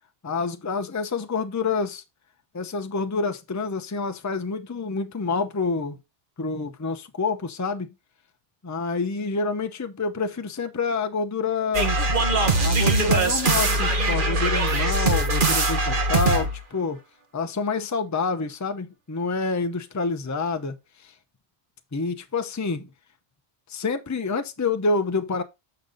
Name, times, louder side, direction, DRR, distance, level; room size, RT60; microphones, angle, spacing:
voice 1, 0.2-2.0 2.5-6.0 6.4-7.9 8.6-11.9 12.6-17.0 17.3-20.8 21.9-22.9 23.7-25.4, left 4 dB, 20° left, 0.6 m, -27 dB
sound 1, 11.7-16.6, right 2 dB, 50° right, 1.3 m, -21 dB
6.9 x 5.3 x 3.8 m
omnidirectional pair, 1.1 m